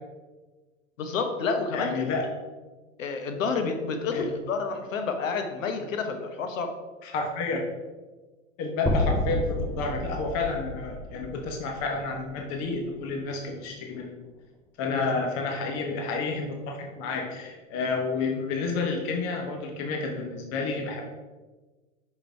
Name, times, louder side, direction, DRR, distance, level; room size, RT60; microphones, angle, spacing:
voice 1, 1.0-2.0 3.0-6.7 14.9-15.1, left 4 dB, 75° left, 6 dB, 1.1 m, -29 dB
voice 2, 1.7-2.3 4.1-4.3 7.0-7.6 8.6-14.1 14.8-21.1, left 4 dB, 40° left, 2 dB, 1.1 m, -30 dB
sound 1, 8.9-13.0, left 1 dB, ahead, 0.6 m, -31 dB
5.5 x 5.1 x 4.5 m, 1.3 s
hypercardioid pair, 95°, 40 cm